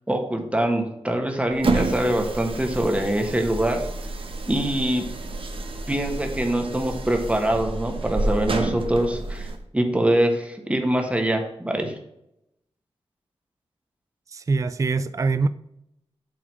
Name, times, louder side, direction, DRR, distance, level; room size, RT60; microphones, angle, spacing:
voice 1, 0.1-3.8 4.5-5.0 5.9-9.5 9.7-11.9, right 1 dB, 10° right, 3 dB, 1.4 m, -24 dB
sound 1, 1.5-9.6, right 2 dB, 60° right, 1.1 m, -29 dB
voice 2, 14.3-15.5, right 4 dB, 30° right, 14 dB, 0.4 m, -23 dB
7.6 x 3.9 x 6.1 m, 0.81 s
wide cardioid pair, 90°, 11 cm